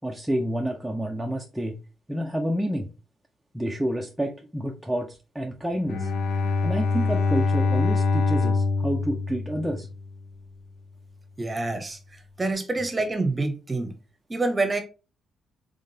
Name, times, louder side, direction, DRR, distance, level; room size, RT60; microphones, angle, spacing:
voice 1, 0.0-1.8 2.1-2.9 3.5-6.1 6.6-9.9, equal, 5° right, 0.5 m, -29 dB
Bowed string instrument, 5.8-10.2, left 4 dB, 80° left, 0.8 m, -24 dB
voice 2, 11.4-12.0 12.4-13.9 14.3-14.8, right 2 dB, 20° right, 0.9 m, -26 dB
3.6 x 3.5 x 2.7 m
cardioid pair, 90°, 0 cm